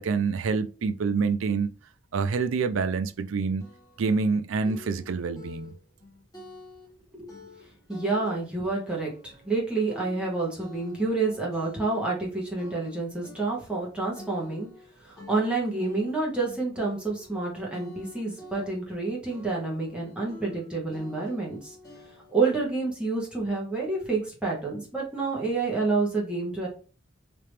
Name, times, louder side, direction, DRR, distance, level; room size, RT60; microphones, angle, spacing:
voice 1, 0.0-1.7 2.1-3.7 4.0-5.7, right 4 dB, 75° right, 0.4 m, -26 dB
sound 1, 3.6-4.4 4.6-7.0 7.3-8.6 8.9-12.3 12.6-17.5 17.7-19.0 19.3-22.6, left 2 dB, 20° left, 1.4 m, -47 dB
voice 2, 7.9-14.7 15.0-21.7 22.3-26.7, right 3 dB, 5° right, 1.2 m, -28 dB
3.4 x 2.8 x 3.2 m
head